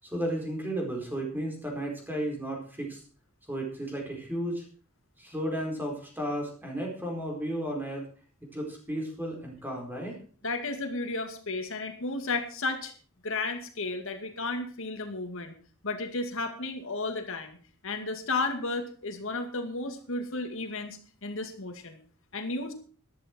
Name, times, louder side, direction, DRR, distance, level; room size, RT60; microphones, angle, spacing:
voice 1, 0.0-3.0 3.5-4.6 5.2-8.0 8.5-10.1, right 1 dB, 10° right, 0 dB, 4.4 m, -33 dB
voice 2, 10.4-12.9 13.2-15.5 15.8-17.6 17.8-22.0 22.3-22.7, left 3 dB, 60° left, 6 dB, 2.3 m, -33 dB
13.5 x 12.0 x 4.5 m, 0.41 s
head